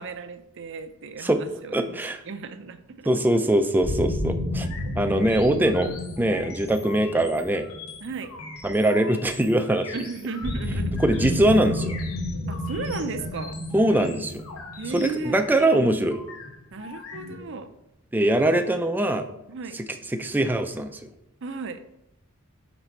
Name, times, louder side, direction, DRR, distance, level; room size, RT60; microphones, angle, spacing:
voice 1, 0.0-2.0 2.3-3.1 4.8-4.9 8.0-8.3 9.9-10.9 12.5-13.6 14.8-15.4 16.7-17.7 19.5-19.8 21.4-21.8, right 4 dB, 60° right, 9 dB, 0.6 m, -35 dB
voice 2, 1.7-2.2 3.1-4.7 5.0-7.7 8.6-9.9 11.0-12.0 13.7-14.4 14.9-16.2 18.1-19.3 19.7-19.8 20.1-21.0, right 1 dB, 10° right, 6 dB, 0.4 m, -22 dB
sound 1, 3.8-8.8 10.4-16.1, left 1 dB, 10° left, 0.9 m, -31 dB
sound 2, 4.6-17.5, left 4 dB, 90° left, 1.0 m, -42 dB
6.0 x 4.1 x 4.4 m, 0.88 s
head